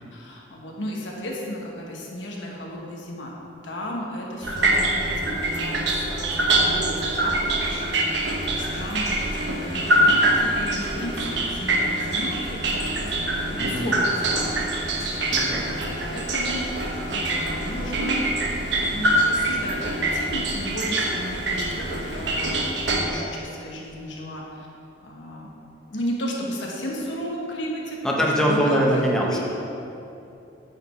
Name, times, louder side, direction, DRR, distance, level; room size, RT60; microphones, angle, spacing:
voice 1, 0.1-3.3 3.6-14.5 15.0-16.7 17.1-18.2 18.6-24.7 25.0-25.5 25.9-28.8 29.2-29.4, equal, 90° left, -2 dB, 1.3 m, -34 dB
sound 1, 4.4-23.0, right 1 dB, 75° right, 1.0 m, -24 dB
sound 2, 8.2-22.7, equal, 65° left, 1.2 m, -40 dB
voice 2, 13.6-13.9 15.3-15.7 28.0-29.4, equal, 5° left, -3 dB, 0.9 m, -22 dB
9.3 x 5.1 x 4.5 m, 2.8 s
head